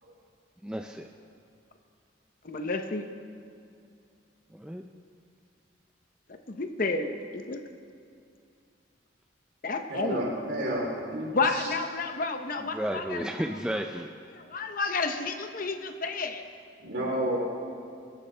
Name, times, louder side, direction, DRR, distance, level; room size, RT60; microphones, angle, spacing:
voice 1, 0.6-1.1 4.5-4.8 12.7-14.1, equal, 5° right, 3 dB, 0.4 m, -32 dB
voice 2, 2.4-3.0 6.3-7.6 9.6-10.3 11.3-13.5 14.3-16.4, left 3 dB, 45° left, 6 dB, 0.8 m, -31 dB
voice 3, 9.9-11.7 16.8-17.4, right 1 dB, 60° right, -3 dB, 3.6 m, -31 dB
22.0 x 9.7 x 3.4 m, 2.4 s
head